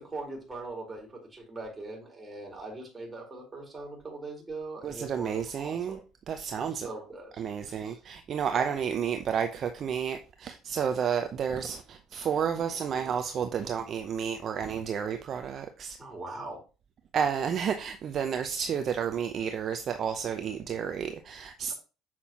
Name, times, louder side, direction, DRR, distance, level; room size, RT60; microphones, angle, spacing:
voice 1, 0.0-6.0 6.6-7.4 7.7-8.0 8.5-8.7 16.0-16.6, right 2 dB, 20° right, 4.2 m, -41 dB
voice 2, 4.8-6.0 6.3-6.9 7.4-16.0 17.1-21.7, right 7 dB, 50° right, 0.7 m, -31 dB
7.5 x 5.9 x 3.0 m
hypercardioid pair, 65°, 0 cm